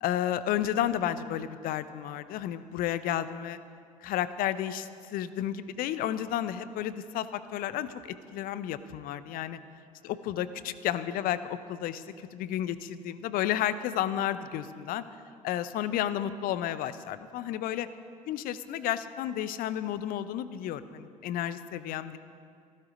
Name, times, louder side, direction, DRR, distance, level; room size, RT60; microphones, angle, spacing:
voice 1, 0.0-3.6 4.0-9.6 10.0-12.0 12.3-15.0 15.4-17.9 18.3-22.2, left 11 dB, 50° left, 14 dB, 0.7 m, -32 dB
15.0 x 13.5 x 5.1 m, 2.3 s
figure-of-eight pair, 60°, 19 cm